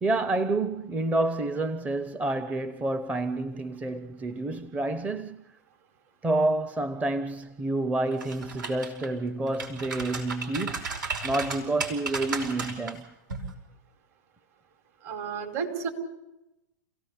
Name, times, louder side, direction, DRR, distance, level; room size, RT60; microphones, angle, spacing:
voice 1, 0.0-5.4 6.2-10.8 11.2-13.1, right 2 dB, 15° right, 0.7 m, -29 dB
sound 1, 8.1-9.1 9.5-12.9 13.3-13.5, right 4 dB, 80° right, 5.2 m, -34 dB
voice 2, 15.0-15.9, right 6 dB, 55° right, 4.8 m, -32 dB
28.5 x 17.0 x 6.8 m
hypercardioid pair, 125°, 10 cm